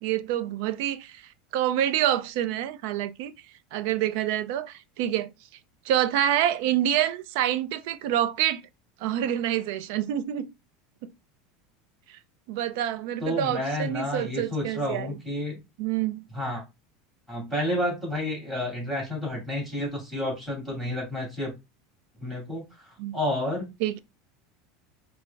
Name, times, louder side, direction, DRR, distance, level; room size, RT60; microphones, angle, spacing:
voice 1, 0.0-1.2 1.5-3.3 3.7-5.3 5.9-8.6 9.0-10.5 12.5-15.1 15.8-16.2 23.0-23.2 23.8-24.0, right 11 dB, 65° right, 0.4 m, -27 dB
voice 2, 13.2-15.6 16.3-16.6 17.3-21.5 22.2-23.7, left 1 dB, 10° right, 2.1 m, -30 dB
4.5 x 2.0 x 3.3 m
supercardioid pair, 155°, 0 cm